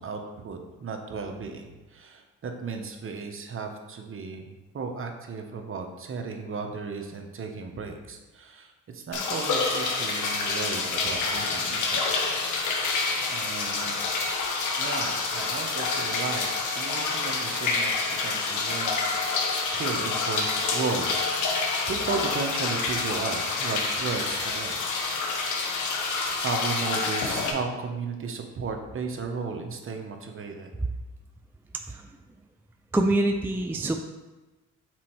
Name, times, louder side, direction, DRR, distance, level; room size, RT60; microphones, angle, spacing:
voice 1, 0.0-12.1 13.3-13.9 14.8-16.5 16.8-21.6 21.9-24.8 26.4-30.7, right 4 dB, 45° right, 4 dB, 1.0 m, -35 dB
sound 1, 9.1-27.5, left 4 dB, 75° left, 1.0 m, -28 dB
voice 2, 32.9-34.0, right 2 dB, 5° right, 3 dB, 0.4 m, -25 dB
6.1 x 4.3 x 4.5 m, 1.2 s
cardioid pair, 90°, 30 cm